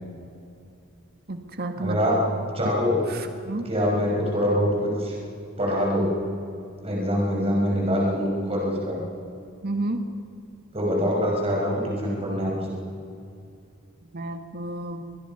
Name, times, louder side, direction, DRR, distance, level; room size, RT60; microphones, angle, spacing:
voice 1, 1.3-2.0 3.1-3.2 3.4-3.7 9.6-10.0 14.1-15.0, right 2 dB, 50° right, 6 dB, 1.7 m, -30 dB
voice 2, 1.8-2.2 2.5-3.0 3.6-5.2 5.6-6.1 6.8-9.0 10.7-12.7, equal, 30° right, -2 dB, 5.8 m, -24 dB
25.5 x 20.5 x 5.9 m, 2.5 s
head